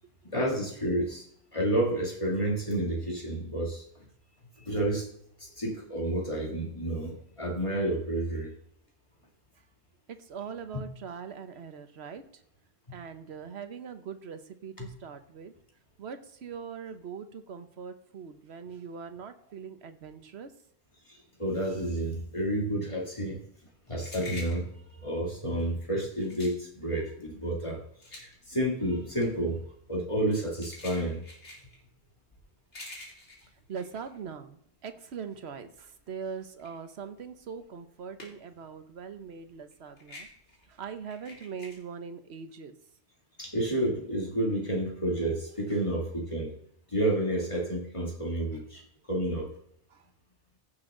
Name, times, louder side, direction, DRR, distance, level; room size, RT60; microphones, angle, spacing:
voice 1, 0.3-1.2 1.5-3.8 4.7-5.1 5.4-8.5 10.7-10.8 14.8-14.9 21.4-23.4 23.9-24.7 25.0-27.8 28.1-31.2 43.4-46.6 46.9-48.8 49.1-49.5, right 1 dB, 25° left, -1 dB, 2.7 m, -30 dB
voice 2, 10.1-12.2 12.9-15.5 16.0-20.5 33.7-40.3 40.7-42.8 49.9-50.0, right 6 dB, 70° right, 9 dB, 1.2 m, -41 dB
sound 1, 23.4-34.9 35.2-38.7 38.9-41.8, left 2 dB, 85° left, 2.7 m, -48 dB
15.5 x 6.2 x 3.8 m, 0.71 s
omnidirectional pair, 1.2 m